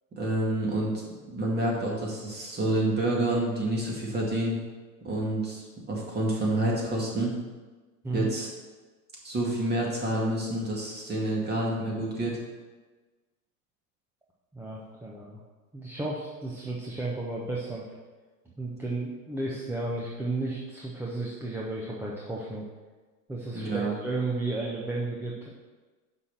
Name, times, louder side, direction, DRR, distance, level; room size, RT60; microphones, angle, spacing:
voice 1, 0.2-0.9 1.3-4.6 5.0-7.3 8.1-8.5 9.2-12.4 23.5-23.9, right 1 dB, 20° right, -3 dB, 2.2 m, -28 dB
voice 2, 14.5-15.4 15.7-17.8 18.6-22.6 23.3-25.5, right 2 dB, 5° right, -4 dB, 0.6 m, -33 dB
5.8 x 5.7 x 6.5 m, 1.3 s
hypercardioid pair, 125°, 47 cm